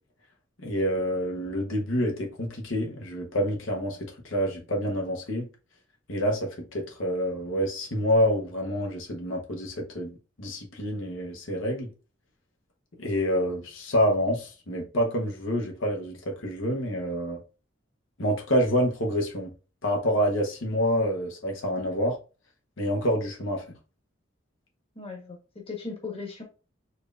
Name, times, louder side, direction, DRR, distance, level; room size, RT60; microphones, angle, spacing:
voice 1, 0.6-5.5 6.1-10.1 10.4-11.9 13.0-17.4 18.2-19.5 19.8-22.2 22.8-23.6, equal, 80° left, 1.0 m, -27 dB
voice 2, 24.9-26.4, left 4 dB, 30° left, 1.1 m, -38 dB
4.5 x 3.3 x 2.4 m
head